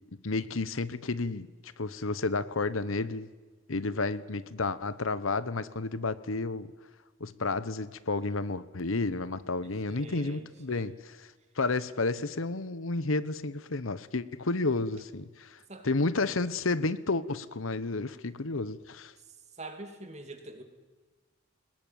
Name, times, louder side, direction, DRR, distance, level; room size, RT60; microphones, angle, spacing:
voice 1, 0.2-3.3 3.7-6.7 7.2-11.2 11.6-15.6 15.8-19.1, left 3 dB, 80° left, 15 dB, 1.0 m, -31 dB
voice 2, 9.6-10.9 15.7-15.9 19.6-20.6, right 2 dB, 30° right, 6 dB, 2.8 m, -45 dB
22.5 x 20.0 x 9.3 m, 1.3 s
head